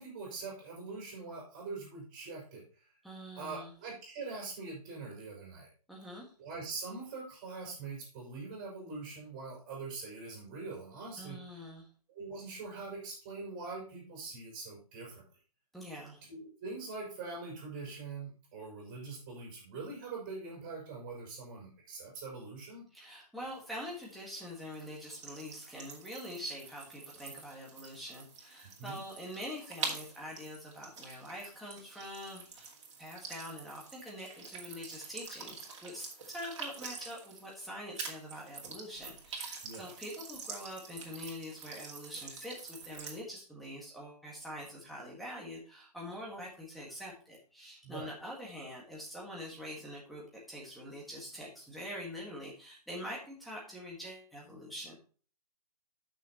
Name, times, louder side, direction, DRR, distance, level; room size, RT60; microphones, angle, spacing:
voice 1, 0.0-2.9 3.3-5.7 6.4-11.4 12.1-15.2 16.3-22.9 28.8-29.0 39.6-39.9 47.8-48.1, right 4 dB, 20° right, -2 dB, 5.0 m, -43 dB
voice 2, 3.0-3.7 5.9-6.3 11.2-11.8 15.7-16.2 22.9-32.7 33.0-55.0, equal, ahead, -4 dB, 1.6 m, -45 dB
sound 1, 23.4-37.7 37.9-43.2, right 4 dB, 45° right, 2.5 m, -46 dB
12.5 x 6.4 x 3.0 m, 0.38 s
hypercardioid pair, 170°, 20 cm